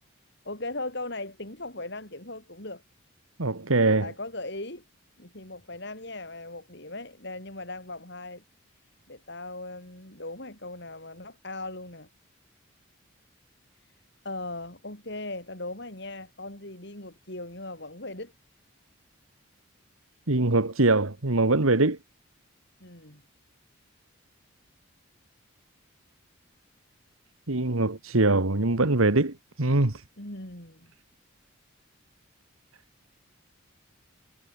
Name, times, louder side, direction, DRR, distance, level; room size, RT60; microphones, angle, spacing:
voice 1, 0.4-2.8 4.0-4.8 5.2-8.4 9.1-12.1 14.2-18.3 22.8-23.2 30.2-30.9, left 2 dB, 55° left, 6.6 m, -38 dB
voice 2, 3.4-4.1 20.3-22.0 27.5-30.0, right 2 dB, 85° right, 1.8 m, -23 dB
head